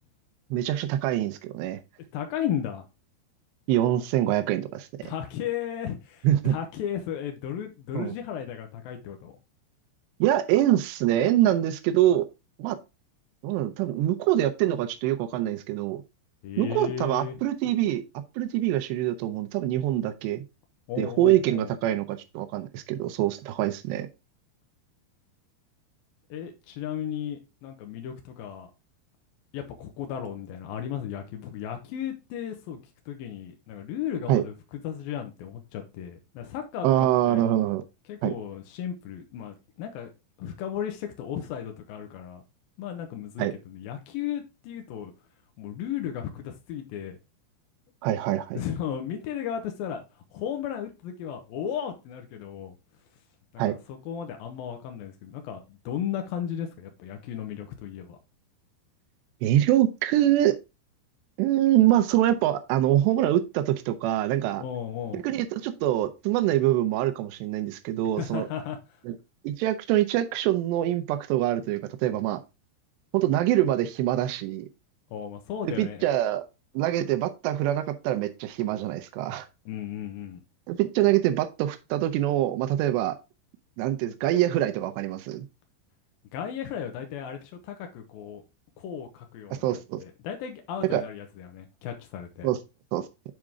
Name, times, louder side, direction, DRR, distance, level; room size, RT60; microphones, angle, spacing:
voice 1, 0.5-1.8 3.7-5.1 6.2-6.6 7.9-8.1 10.2-12.3 12.6-12.8 13.4-16.0 16.6-18.0 18.4-20.4 21.0-24.1 34.3-34.4 36.8-37.8 38.2-38.3 43.4-43.5 48.0-48.6 53.6-53.8 59.4-60.6 61.4-64.6 65.1-68.5 69.1-69.2 69.4-72.4 73.1-74.7 75.6-76.4 76.7-79.5 80.7-83.2 83.8-85.5 89.6-90.0 90.9-91.0 92.4-92.6 92.9-93.0, right 13 dB, 80° right, 2.5 m, -24 dB
voice 2, 2.1-2.9 5.0-9.3 16.4-17.4 20.9-21.7 26.3-28.7 29.5-32.8 33.1-34.5 34.8-37.4 38.1-40.1 40.4-42.4 42.8-45.1 45.6-47.2 48.5-50.0 50.3-52.7 53.5-58.2 64.6-65.2 68.2-68.8 75.1-76.0 79.7-80.4 86.3-88.4 88.8-92.5, left 9 dB, 80° left, 2.1 m, -35 dB
7.6 x 5.0 x 3.5 m
omnidirectional pair, 5.4 m